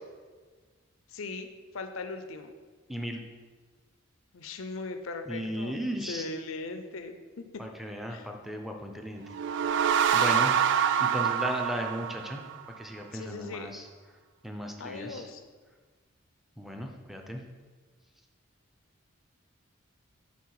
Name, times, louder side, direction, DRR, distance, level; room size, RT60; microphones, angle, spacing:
voice 1, 1.1-2.5 4.3-7.6 8.1-8.3 10.1-10.5 13.1-13.7 14.8-15.4, left 3 dB, 75° left, 7 dB, 0.6 m, -39 dB
voice 2, 2.9-3.2 5.3-6.3 7.6-9.2 10.1-10.5 11.0-12.4 12.8-13.9 14.4-15.3 16.6-17.4, equal, ahead, 2 dB, 0.6 m, -35 dB
sound 1, 9.2-12.8, right 8 dB, 60° right, 0.3 m, -26 dB
6.9 x 4.3 x 4.8 m, 1.4 s
head